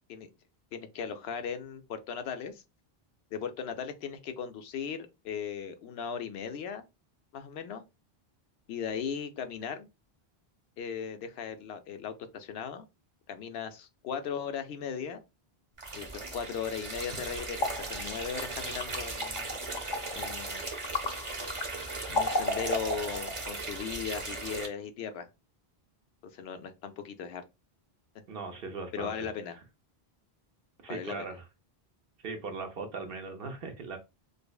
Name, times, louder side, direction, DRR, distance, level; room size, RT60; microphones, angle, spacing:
voice 1, 0.7-2.6 3.3-6.9 7.3-7.8 8.7-9.9 10.8-12.8 13.3-15.2 15.9-19.5 20.1-20.6 22.1-25.3 26.3-27.4 28.9-29.6 30.9-31.3, left 7 dB, 80° left, 0.8 m, -37 dB
sound 1, 15.8-24.7, right 3 dB, 35° right, 0.7 m, -38 dB
sound 2, 17.0-23.6, left 2 dB, 50° left, 0.8 m, -35 dB
voice 2, 28.3-29.3 30.8-31.4 32.2-34.0, right 4 dB, 65° right, 0.9 m, -39 dB
5.1 x 2.0 x 2.2 m
omnidirectional pair, 1.0 m